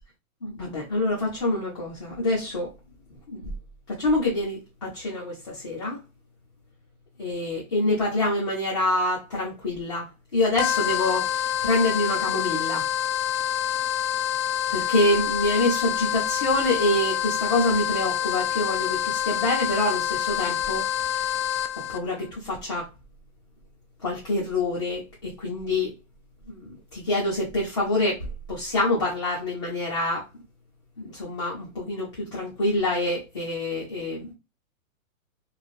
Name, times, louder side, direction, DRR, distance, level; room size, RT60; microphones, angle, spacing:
voice 1, 0.4-2.7 3.3-3.4 3.9-6.0 7.2-12.9 14.7-21.3 21.8-22.9 24.0-25.9 26.5-30.3 31.0-34.3, left 2 dB, 20° left, 0.4 m, -26 dB
sound 1, 10.6-22.0, left 11 dB, 90° left, 0.6 m, -27 dB
3.1 x 2.5 x 2.5 m
hypercardioid pair, 165°, 43 cm